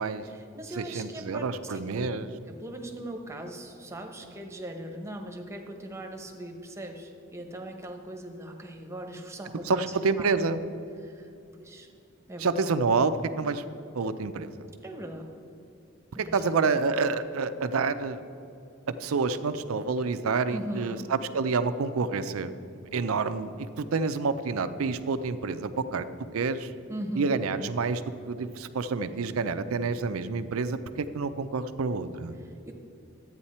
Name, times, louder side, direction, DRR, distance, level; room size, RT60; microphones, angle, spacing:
voice 1, 0.2-2.1 2.5-9.8 10.2-10.3 11.0-11.3 11.6-11.9 12.3-12.7 14.8-15.3 16.1-16.3 20.5-21.1 26.9-27.4 32.4-32.7, right 1 dB, 15° right, 3 dB, 0.9 m, -39 dB
voice 2, 0.8-2.3 9.6-10.6 12.4-13.6 13.9-14.5 16.2-18.2 19.0-26.1 26.3-26.7 27.1-32.3, right 4 dB, 85° right, 11 dB, 0.5 m, -28 dB
12.0 x 8.8 x 4.3 m, 2.7 s
head